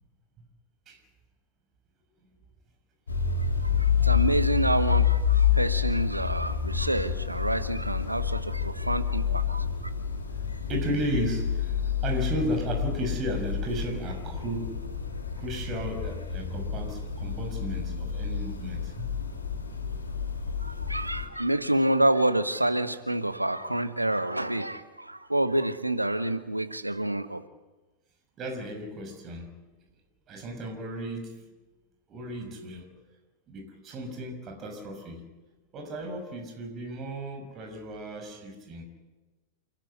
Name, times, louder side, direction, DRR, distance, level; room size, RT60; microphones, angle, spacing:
sound 1, 3.1-21.2, left 7 dB, 75° left, 3.1 m, -28 dB
voice 1, 3.6-9.9 20.6-27.4, right 1 dB, 85° right, 11 dB, 1.2 m, -28 dB
voice 2, 10.7-14.8 15.4-19.1 28.4-29.5 30.3-31.4 32.1-32.9 33.5-35.2 35.7-38.8, right 1 dB, 30° right, 4 dB, 6.1 m, -34 dB
29.0 x 12.5 x 9.8 m, 1.2 s
figure-of-eight pair, 90°, 0 cm